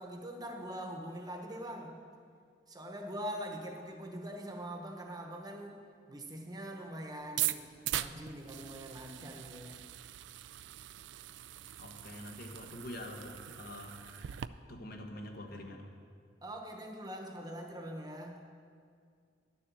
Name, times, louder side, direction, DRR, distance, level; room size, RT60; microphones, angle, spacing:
voice 1, 0.0-2.0 2.7-5.8 6.1-9.8 16.4-18.5, equal, 20° right, 3 dB, 1.1 m, -43 dB
sound 1, 7.2-14.5, right 13 dB, 70° right, 0.3 m, -40 dB
voice 2, 11.8-14.4 14.7-15.8, left 1 dB, 55° left, 2 dB, 1.3 m, -46 dB
11.0 x 7.0 x 7.4 m, 2.2 s
head